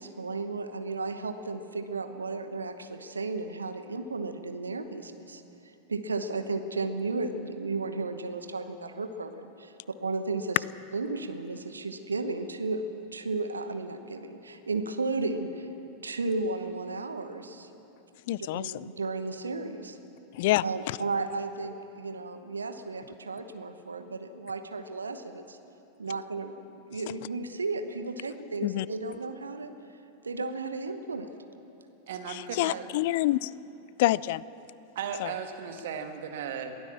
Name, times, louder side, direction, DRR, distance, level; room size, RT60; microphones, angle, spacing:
voice 1, 0.0-5.4 5.9-9.7 10.0-10.6 10.9-15.7 16.0-17.7 18.3-20.0 20.6-25.6 26.0-29.7 30.2-31.3, right 3 dB, 75° right, 9 dB, 1.1 m, -34 dB
voice 2, 18.3-18.9 20.3-21.0 28.6-28.9 32.3-33.5 34.0-34.4 35.2-35.3, left 17 dB, 50° left, 21 dB, 0.4 m, -27 dB
voice 3, 32.1-32.9 35.0-36.8, right 7 dB, 55° right, 5 dB, 1.9 m, -36 dB
22.5 x 16.0 x 7.3 m, 2.9 s
figure-of-eight pair, 90°, 0 cm